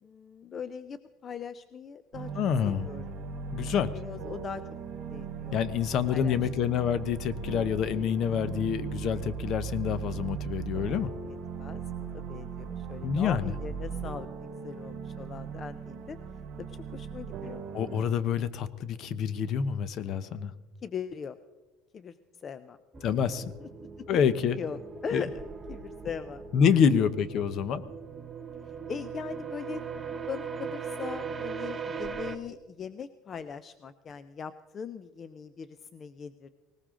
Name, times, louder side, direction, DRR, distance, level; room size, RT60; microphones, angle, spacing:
voice 1, 0.0-2.3 2.6-3.1 3.6-4.6 5.1-5.6 6.1-6.4 11.3-16.2 16.6-17.6 20.8-21.4 21.9-22.8 23.6-23.7 24.1-24.2 24.6-25.4 25.7-26.9 28.9-36.5, left 6 dB, 25° left, 13 dB, 0.4 m, -40 dB
sound 1, 2.1-18.0, right 6 dB, 50° right, 3.7 m, -38 dB
voice 2, 2.4-2.9 3.5-3.9 5.5-11.1 13.0-13.5 17.7-20.5 23.0-23.5 24.1-24.6 25.1-25.2 26.5-27.8, left 7 dB, 45° left, 15 dB, 0.8 m, -27 dB
sound 2, 22.9-32.4, right 6 dB, 15° right, 1.0 m, -39 dB
19.5 x 19.0 x 3.7 m, 1.2 s
cardioid pair, 165°, 0 cm